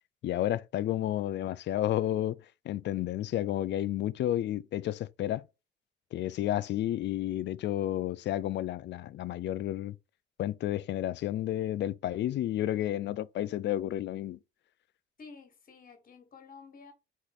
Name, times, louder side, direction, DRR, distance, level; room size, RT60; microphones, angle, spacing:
voice 1, 0.2-2.4 2.7-5.4 6.1-10.0 10.4-14.4, left 12 dB, 65° left, 0.4 m, -31 dB
voice 2, 15.2-16.9, left 5 dB, 45° left, 1.6 m, -51 dB
4.7 x 2.5 x 4.0 m
cardioid pair, 90°, 20 cm